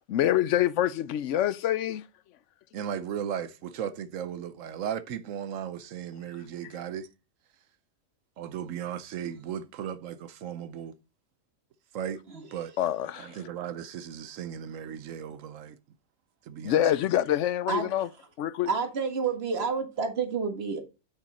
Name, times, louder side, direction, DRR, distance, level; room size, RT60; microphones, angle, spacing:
voice 1, 0.1-2.0 12.8-13.3 16.6-18.1 18.4-18.7, left 12 dB, 75° left, 0.9 m, -26 dB
voice 2, 2.7-7.1 8.4-10.9 11.9-12.2 12.5-12.7 13.2-15.8 16.5-16.8, right 9 dB, 85° right, 1.1 m, -36 dB
voice 3, 18.7-20.8, right 5 dB, 55° right, 1.8 m, -29 dB
8.8 x 6.5 x 4.1 m
omnidirectional pair, 1.3 m